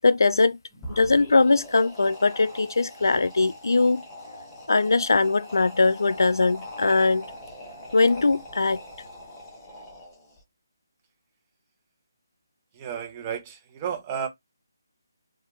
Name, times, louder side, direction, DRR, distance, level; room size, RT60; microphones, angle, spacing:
voice 1, 0.0-0.6 0.9-4.0 4.7-7.3 7.9-8.8, left 3 dB, 70° left, 0.3 m, -21 dB
sound 1, 0.7-10.4, left 1 dB, 10° left, 0.8 m, -42 dB
voice 2, 12.8-14.3, right 7 dB, 20° right, 0.5 m, -32 dB
2.9 x 2.1 x 2.3 m
figure-of-eight pair, 150°, 2 cm